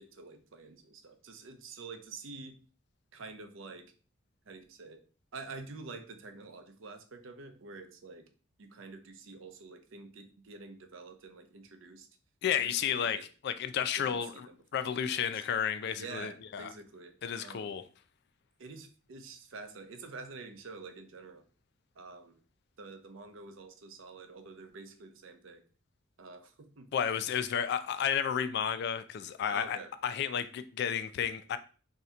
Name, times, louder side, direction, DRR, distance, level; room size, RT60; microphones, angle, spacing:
voice 1, 0.0-2.6 3.1-3.9 4.5-5.0 5.3-8.3 8.6-12.1 12.6-13.3 13.9-15.4 16.0-17.8 18.6-21.4 22.0-22.3 22.8-25.6 26.2-26.9 29.5-29.9, right 3 dB, 75° right, 0.6 m, -48 dB
voice 2, 12.4-13.2 13.4-14.5 14.7-16.7 17.2-17.8 26.9-31.6, left 8 dB, 55° left, 0.3 m, -32 dB
2.7 x 2.4 x 4.2 m
head